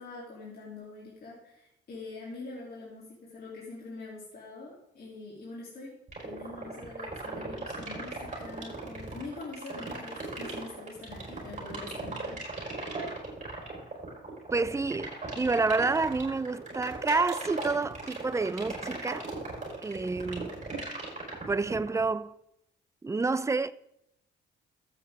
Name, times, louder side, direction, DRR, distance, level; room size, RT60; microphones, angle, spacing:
voice 1, 0.0-12.4, left 3 dB, 50° left, 3.2 m, -44 dB
sound 1, 6.1-22.0, right 3 dB, 35° right, 4.7 m, -37 dB
voice 2, 14.5-19.3 19.8-20.6 21.5-22.3 23.0-23.7, right 3 dB, 15° right, 0.5 m, -29 dB
13.5 x 8.3 x 3.7 m
cardioid pair, 90°, 20 cm